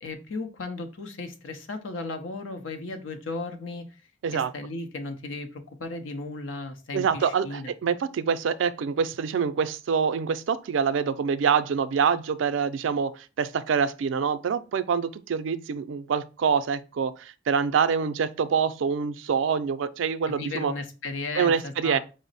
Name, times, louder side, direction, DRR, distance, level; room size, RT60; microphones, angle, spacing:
voice 1, 0.0-3.9 4.3-7.7 20.3-22.0, left 3 dB, 90° left, 0.7 m, -35 dB
voice 2, 6.9-20.7 21.4-22.0, right 6 dB, 75° right, 0.3 m, -26 dB
5.1 x 2.0 x 3.9 m
head